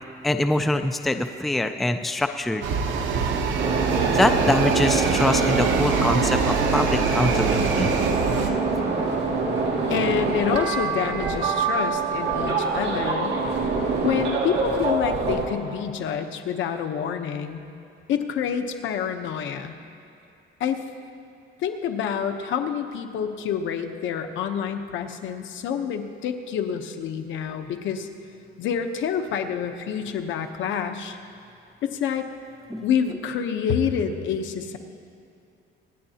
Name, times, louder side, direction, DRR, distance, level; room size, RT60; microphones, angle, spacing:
voice 1, 0.2-2.7 4.1-7.9 32.7-32.8, left 1 dB, ahead, 7 dB, 0.3 m, -24 dB
sound 1, 2.6-8.5, right 6 dB, 80° right, 1.0 m, -25 dB
sound 2, 3.6-15.5, right 3 dB, 60° right, 2.2 m, -25 dB
voice 2, 9.9-13.4 14.0-17.7 18.1-19.7 20.6-20.8 21.6-28.1 28.6-31.2 31.8-32.3 32.8-34.8, left 7 dB, 75° left, 6 dB, 0.9 m, -27 dB
25.5 x 9.9 x 2.8 m, 2.5 s
cardioid pair, 155°, 20 cm